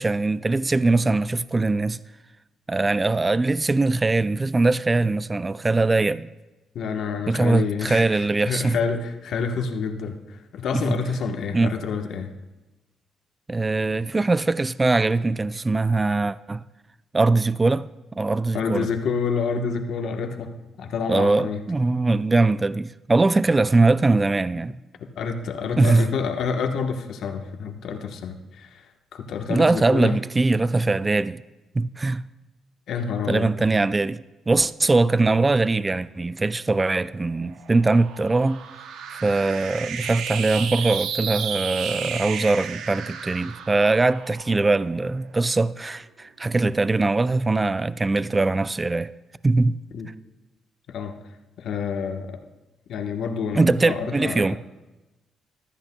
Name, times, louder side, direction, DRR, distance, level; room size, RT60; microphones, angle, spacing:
voice 1, 0.0-2.0 2.7-6.3 7.3-8.8 10.7-11.0 11.5-11.7 13.5-16.6 17.1-17.9 18.2-18.9 21.1-24.8 25.8-26.1 29.5-31.4 31.8-32.2 33.3-38.6 39.1-49.1 49.4-49.8 53.5-54.6, right 3 dB, 20° right, 0.3 m, -21 dB
voice 2, 6.7-12.3 18.5-20.5 20.8-21.6 25.2-28.9 29.1-30.2 32.9-33.5 49.9-50.1 50.9-51.2 51.6-52.4 52.9-54.6, left 5 dB, 70° left, 1.1 m, -28 dB
sound 1, 37.1-45.6, right 7 dB, 75° right, 0.7 m, -33 dB
14.5 x 13.0 x 2.3 m
cardioid pair, 90°, 0 cm